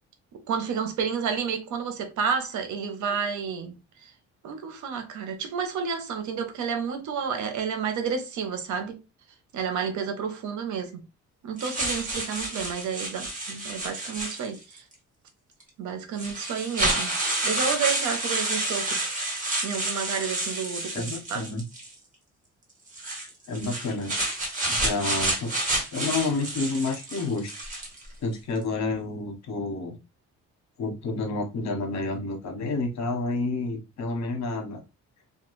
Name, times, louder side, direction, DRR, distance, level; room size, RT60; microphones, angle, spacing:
voice 1, 0.5-3.8 4.4-8.9 9.5-11.0 11.4-14.8 15.8-17.1 17.4-19.0 19.6-21.4, right 6 dB, 75° right, 0.8 m, -30 dB
sound 1, 11.6-14.8 15.6-15.7 16.2-21.9 22.9-28.1, right 2 dB, 25° right, 1.4 m, -29 dB
voice 2, 20.9-21.6 23.5-24.1 24.7-27.5 28.2-29.9 30.8-34.8, left 3 dB, 65° left, 1.1 m, -29 dB
2.3 x 2.3 x 3.0 m
cardioid pair, 90°, 30 cm